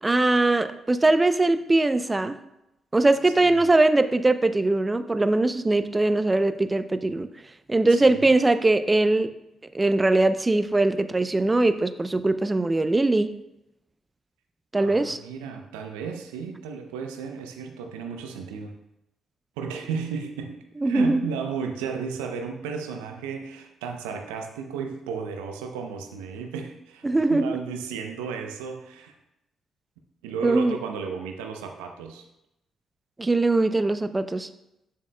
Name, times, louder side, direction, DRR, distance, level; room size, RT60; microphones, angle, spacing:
voice 1, 0.0-2.4 2.9-7.3 7.7-9.3 9.7-13.3 14.7-15.2 20.8-21.3 27.0-27.6 30.4-30.8 33.2-34.5, right 2 dB, 25° right, 11 dB, 0.5 m, -21 dB
voice 2, 14.8-18.8 19.6-20.6 20.8-29.1 30.2-32.2, right 6 dB, 85° right, 4 dB, 0.6 m, -34 dB
8.6 x 7.1 x 2.2 m, 0.88 s
hypercardioid pair, 45°, 0 cm